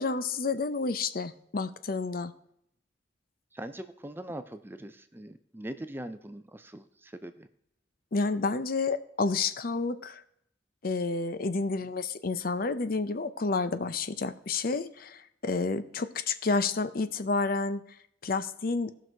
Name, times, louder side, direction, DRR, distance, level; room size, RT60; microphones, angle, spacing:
voice 1, 0.0-2.3 8.1-10.2 10.8-17.8 18.2-18.9, left 3 dB, 50° left, 12 dB, 0.6 m, -30 dB
voice 2, 3.5-7.5, right 1 dB, 10° right, 10 dB, 0.5 m, -41 dB
17.0 x 6.1 x 4.5 m, 0.73 s
head